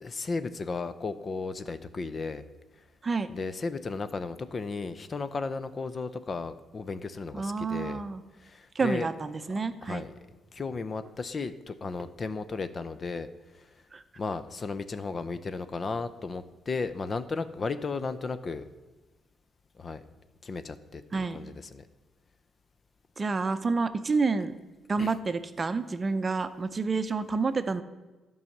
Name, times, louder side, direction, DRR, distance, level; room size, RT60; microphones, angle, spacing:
voice 1, 0.0-2.4 3.3-8.0 8.4-9.1 9.8-10.1 10.5-13.3 13.5-13.7 14.2-18.6 19.8-20.0 20.4-21.8 25.0-25.1, left 4 dB, 40° left, 12 dB, 0.6 m, -34 dB
voice 2, 7.3-8.2 8.7-10.0 13.9-14.0 21.1-21.4 23.2-24.6 24.9-27.8, right 4 dB, 30° right, 11 dB, 0.6 m, -29 dB
11.0 x 5.5 x 7.1 m, 1.2 s
cardioid pair, 90°, 0 cm